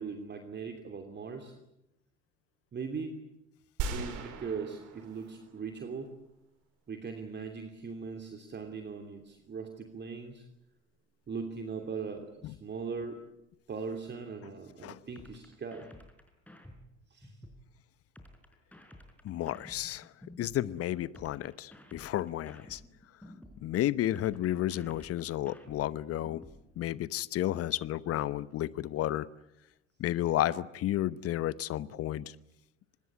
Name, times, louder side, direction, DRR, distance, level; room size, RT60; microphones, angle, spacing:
voice 1, 0.0-1.5 2.7-3.2 3.9-6.1 6.9-10.5 11.3-13.2 13.7-15.9 17.1-17.4, right 5 dB, 30° right, 5 dB, 3.0 m, -40 dB
sound 1, 3.8-6.1, right 5 dB, 55° right, 5.3 m, -38 dB
sound 2, 15.2-17.6 18.2-20.6 21.2-23.6 24.2-26.6, left 1 dB, 5° left, 5.3 m, -52 dB
voice 2, 19.2-20.1 20.4-22.8 23.6-26.4 26.8-29.3 30.0-32.3, left 13 dB, 40° left, 18 dB, 1.0 m, -32 dB
25.5 x 20.5 x 9.6 m, 0.85 s
figure-of-eight pair, 70°, 37 cm